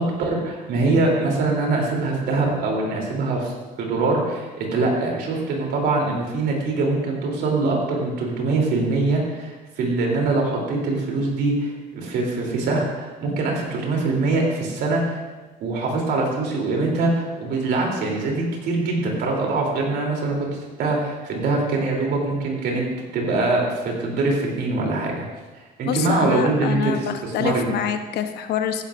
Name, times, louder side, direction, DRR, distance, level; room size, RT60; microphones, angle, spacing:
voice 1, 0.2-3.5 3.8-15.2 15.6-20.3 20.8-22.8 23.1-25.1 25.8-27.7, right 3 dB, 75° right, -1 dB, 3.3 m, -23 dB
voice 2, 25.8-28.8, left 8 dB, 75° left, 7 dB, 1.0 m, -26 dB
15.0 x 11.0 x 2.6 m, 1.2 s
cardioid pair, 110°, 17 cm